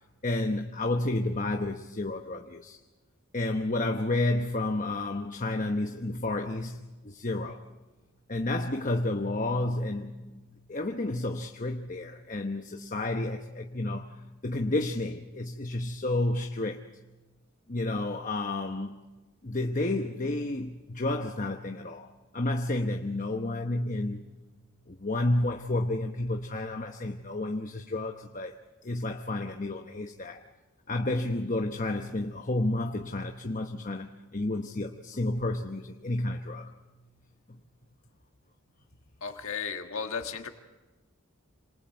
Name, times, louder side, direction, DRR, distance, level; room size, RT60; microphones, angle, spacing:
voice 1, 0.2-2.8 3.3-7.6 8.3-14.2 14.4-16.8 17.7-19.0 19.4-24.2 24.9-30.4 30.9-36.7 37.5-37.6, left 2 dB, 35° left, 1.0 m, -31 dB
voice 2, 39.2-40.5, left 5 dB, 65° left, 1.6 m, -34 dB
27.0 x 27.0 x 4.7 m
head